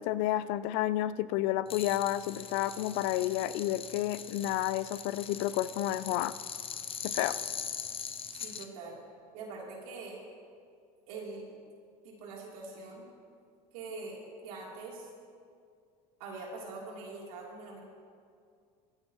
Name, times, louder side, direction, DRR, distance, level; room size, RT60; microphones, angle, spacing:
voice 1, 0.0-6.3 7.0-7.4, left 14 dB, 70° left, 16 dB, 0.5 m, -31 dB
sound 1, 1.7-8.7, left 7 dB, 30° left, 0.8 m, -41 dB
voice 2, 8.4-9.0 9.3-10.2 11.1-11.5 12.0-13.1 13.7-15.1 16.2-17.8, right 3 dB, 80° right, -3 dB, 3.4 m, -43 dB
24.0 x 9.5 x 3.1 m, 2.2 s
supercardioid pair, 90°, 18 cm